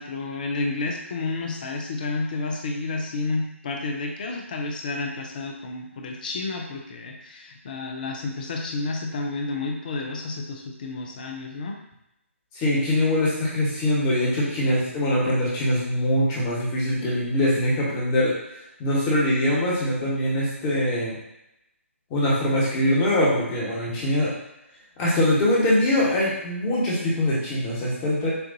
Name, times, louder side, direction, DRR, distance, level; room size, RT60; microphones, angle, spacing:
voice 1, 0.0-11.8, left 3 dB, 40° left, 2 dB, 0.7 m, -30 dB
voice 2, 12.5-18.3 18.8-21.2 22.1-24.3 25.0-28.3, left 1 dB, 20° left, -6 dB, 1.4 m, -23 dB
6.7 x 2.6 x 2.7 m, 0.86 s
figure-of-eight pair, 140°, 7 cm